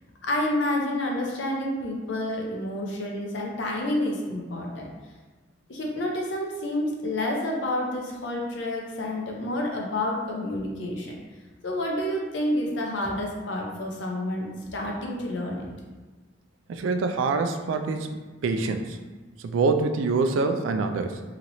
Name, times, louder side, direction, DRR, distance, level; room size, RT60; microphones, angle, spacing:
voice 1, 0.2-4.9 5.7-11.2 11.6-15.7, left 1 dB, 65° left, -1 dB, 0.6 m, -29 dB
voice 2, 16.7-18.1 18.4-19.0 19.4-21.2, right 4 dB, 85° right, 7 dB, 0.3 m, -25 dB
2.9 x 2.9 x 2.6 m, 1.3 s
head